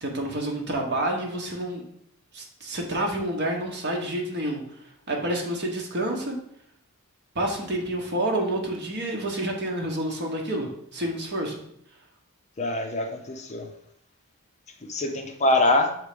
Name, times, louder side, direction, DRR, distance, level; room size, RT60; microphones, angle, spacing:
voice 1, 0.0-1.8 2.3-6.4 7.3-11.6, right 1 dB, 50° right, 1 dB, 1.3 m, -29 dB
voice 2, 12.6-13.7 14.8-15.9, left 2 dB, 30° left, 4 dB, 0.7 m, -24 dB
6.6 x 3.3 x 5.1 m, 0.70 s
head